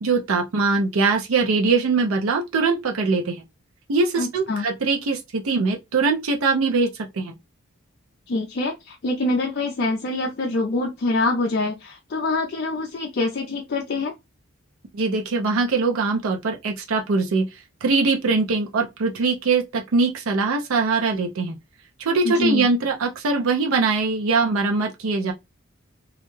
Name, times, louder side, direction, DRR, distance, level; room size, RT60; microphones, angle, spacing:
voice 1, 0.0-3.4 3.9-7.3 14.9-17.5 17.8-21.6 22.0-25.3, right 4 dB, 85° right, 0.5 m, -22 dB
voice 2, 4.2-4.6 8.3-14.1 22.2-22.7, left 2 dB, 50° left, 0.4 m, -25 dB
2.3 x 2.1 x 3.0 m
head